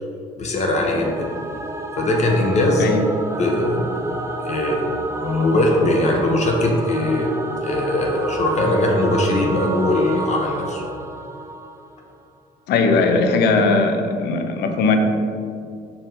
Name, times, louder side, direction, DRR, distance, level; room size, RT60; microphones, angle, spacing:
voice 1, 0.4-1.3 2.0-2.9 3.4-3.9 4.4-7.3 7.6-10.8, left 1 dB, 40° left, 0 dB, 0.9 m, -20 dB
Singing / Musical instrument, 0.9-12.1, right 2 dB, 15° right, 0.5 m, -30 dB
voice 2, 12.7-15.0, left 4 dB, 75° left, 5 dB, 0.7 m, -18 dB
5.6 x 4.7 x 3.9 m, 2.3 s
cardioid pair, 110°, 17 cm